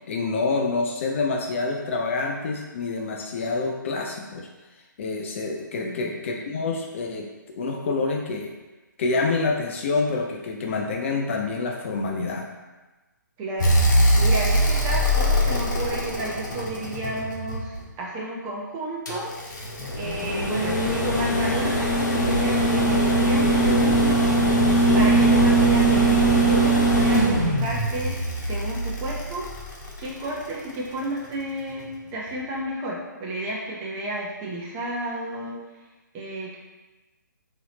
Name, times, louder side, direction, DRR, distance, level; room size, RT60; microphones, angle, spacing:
voice 1, 0.0-4.5 5.0-8.5 9.0-12.5, left 3 dB, 40° left, 1 dB, 0.4 m, -27 dB
voice 2, 5.7-6.1 13.4-19.3 20.0-24.3 24.9-29.5 30.0-35.6 36.1-36.6, right 1 dB, 20° right, -4 dB, 0.7 m, -32 dB
sound 1, 13.6-17.8 19.1-30.2 31.8-31.9, right 1 dB, 60° left, 1.0 m, -21 dB
3.9 x 2.8 x 2.8 m, 1.2 s
figure-of-eight pair, 135°, 11 cm